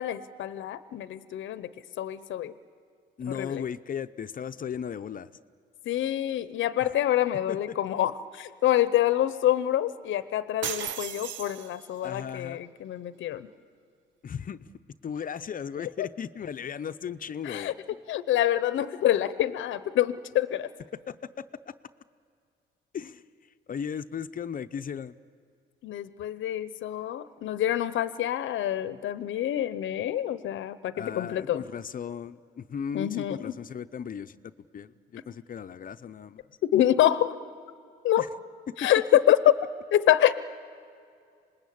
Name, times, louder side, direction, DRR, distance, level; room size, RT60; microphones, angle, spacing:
voice 1, 0.0-1.7 2.0-2.5 3.4-3.6 5.9-13.5 15.8-16.1 17.4-17.7 18.1-20.7 25.8-31.6 32.9-33.5 36.6-37.3 38.0-38.3 38.8-39.5 39.9-40.3, left 12 dB, 75° left, 14 dB, 0.8 m, -26 dB
voice 2, 3.2-5.3 6.8-6.9 7.5-7.8 12.0-12.7 14.2-14.7 15.0-17.8 21.1-21.7 22.9-25.2 30.9-36.5 38.2-38.3 38.7-38.8, left 7 dB, 45° left, 10 dB, 0.7 m, -36 dB
sound 1, 10.6-12.1, right 8 dB, 70° right, 0.9 m, -35 dB
26.0 x 20.0 x 8.6 m, 2.3 s
cardioid pair, 90°, 20 cm